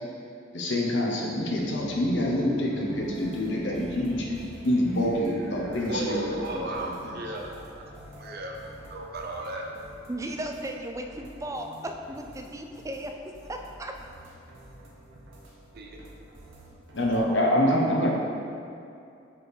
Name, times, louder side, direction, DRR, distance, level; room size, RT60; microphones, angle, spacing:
voice 1, 0.5-4.2 4.6-7.2 16.9-18.1, left 1 dB, 65° left, -2 dB, 1.0 m, -26 dB
sound 1, 1.1-11.3, equal, 5° left, 1.0 m, -48 dB
sound 2, 2.9-17.2, right 1 dB, 90° right, 1.1 m, -50 dB
voice 2, 5.9-7.6 8.2-9.7 15.7-16.0, right 1 dB, 55° right, 0 dB, 0.6 m, -34 dB
voice 3, 10.1-13.1 13.4-13.9, right 1 dB, 15° right, 3 dB, 0.4 m, -35 dB
5.3 x 4.3 x 4.8 m, 2.5 s
head